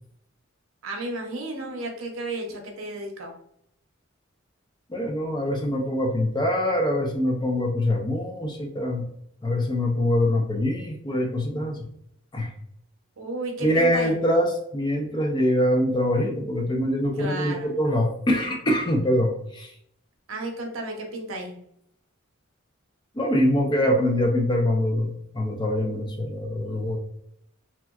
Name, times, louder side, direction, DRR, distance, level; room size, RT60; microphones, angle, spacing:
voice 1, 0.8-3.3 13.2-14.2 17.2-17.7 20.3-21.6, right 2 dB, 80° right, 2 dB, 0.7 m, -33 dB
voice 2, 4.9-9.1 9.4-11.9 12.3-12.5 13.6-19.7 23.1-27.0, left 1 dB, 20° left, 2 dB, 0.4 m, -24 dB
3.2 x 2.9 x 2.3 m, 0.71 s
head